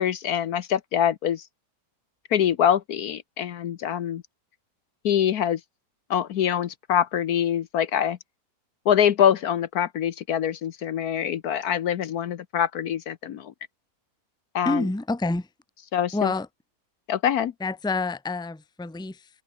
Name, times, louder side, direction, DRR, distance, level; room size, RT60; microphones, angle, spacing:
voice 1, 0.0-1.5 2.3-4.2 5.0-5.6 6.1-8.2 8.9-13.5 14.5-14.8 15.9-16.3 17.1-17.5, left 9 dB, 65° left, 1.3 m, -24 dB
voice 2, 14.6-15.5 16.1-16.5 17.6-19.3, left 3 dB, 5° left, 0.9 m, -27 dB
omnidirectional pair, 1.8 m